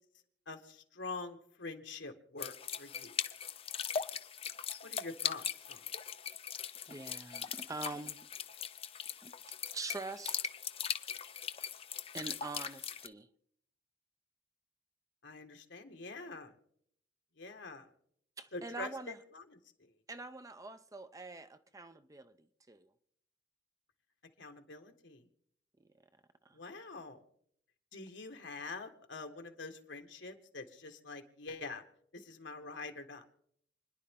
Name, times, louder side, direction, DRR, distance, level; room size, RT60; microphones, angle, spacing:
voice 1, 0.5-3.2 4.8-5.8 15.2-16.5 17.4-17.9 18.5-19.9 24.4-25.3 26.5-27.2 27.9-31.8 32.1-33.2, left 3 dB, 75° left, 1.8 m, -46 dB
sound 1, 2.4-13.1, left 7 dB, 30° left, 0.6 m, -40 dB
voice 2, 6.9-8.2 9.2-9.3 9.7-10.4 12.1-13.3 18.4-19.2 20.1-22.3 22.7-22.9 26.4-26.6, right 3 dB, 20° right, 0.6 m, -44 dB
29.0 x 10.5 x 3.8 m
head